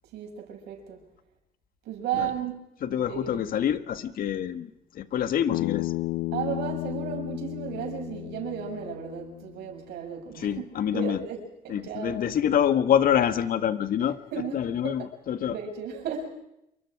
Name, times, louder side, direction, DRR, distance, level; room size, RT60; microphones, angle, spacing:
voice 1, 0.1-1.0 1.8-2.6 3.1-3.5 6.3-12.2 14.3-14.6 14.8-15.0 15.5-16.3, right 8 dB, 80° right, 3 dB, 7.1 m, -34 dB
voice 2, 2.8-5.9 10.4-11.2 11.7-14.2 14.5-15.5, left 9 dB, 60° left, 10 dB, 1.8 m, -26 dB
Bass guitar, 5.5-9.8, left 19 dB, 75° left, 0.7 m, -33 dB
27.5 x 24.0 x 4.9 m, 0.83 s
cardioid pair, 110°, 17 cm